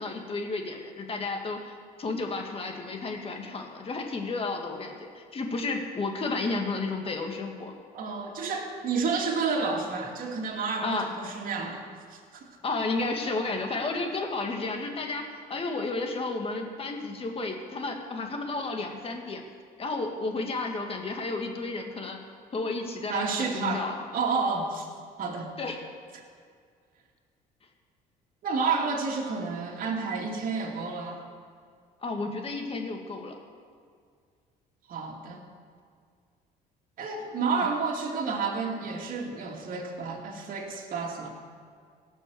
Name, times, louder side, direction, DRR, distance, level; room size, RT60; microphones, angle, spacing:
voice 1, 0.0-7.7 10.8-11.1 12.6-19.4 19.8-22.2 22.5-23.9 25.6-25.8 32.0-33.3 37.6-37.7, left 3 dB, 35° left, 3 dB, 2.0 m, -32 dB
voice 2, 7.9-11.8 12.1-12.4 23.1-24.9 25.2-25.5 28.4-31.2 34.9-35.5 37.0-41.3, right 4 dB, 55° right, 0 dB, 2.5 m, -30 dB
17.0 x 6.4 x 7.8 m, 2.1 s
cardioid pair, 110°, 17 cm